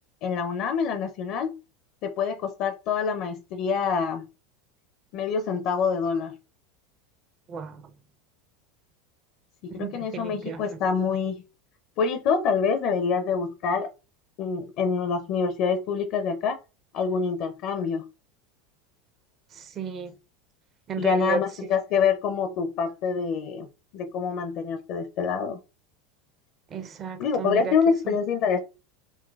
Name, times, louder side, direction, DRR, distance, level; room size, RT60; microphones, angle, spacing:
voice 1, 0.2-1.5 2.0-4.3 5.1-6.4 9.6-11.3 12.0-13.9 14.4-16.6 16.9-18.0 21.0-23.7 23.9-25.6 27.2-28.6, left 6 dB, 55° left, 0.5 m, -26 dB
voice 2, 7.5-7.8 9.8-10.8 19.6-20.1 20.9-21.4 26.7-27.7 28.1-28.2, right 5 dB, 40° right, 0.6 m, -33 dB
3.9 x 2.1 x 2.3 m
hypercardioid pair, 90°, 0 cm